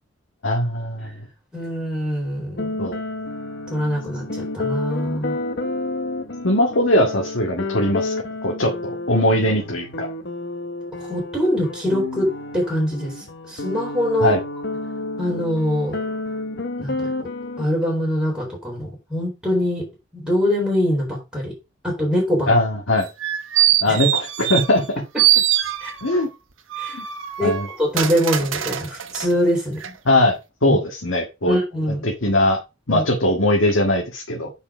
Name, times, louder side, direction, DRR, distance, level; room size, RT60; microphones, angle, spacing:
voice 1, 0.4-1.1 2.8-3.0 6.4-8.1 8.4-10.1 14.2-14.4 22.5-23.1 23.8-24.8 26.0-26.3 26.9-27.0 27.4-27.7 30.1-30.4 30.6-31.6 32.0-32.6 32.9-34.5, left 1 dB, 80° left, 1.9 m, -20 dB
voice 2, 1.5-2.8 3.7-5.4 10.9-14.4 15.2-16.0 16.8-17.1 17.6-19.8 20.1-21.5 21.8-22.5 23.9-24.0 25.8-25.9 26.8-27.0 27.4-29.9 30.7-30.8 31.5-32.0 32.9-33.0, equal, 5° right, 4.0 m, -23 dB
sound 1, 2.6-17.6, left 2 dB, 60° left, 1.1 m, -30 dB
sound 2, 23.0-24.9 25.2-26.2 26.7-29.3 29.8-29.9, right 12 dB, 80° right, 1.1 m, -22 dB
7.0 x 5.5 x 5.1 m
head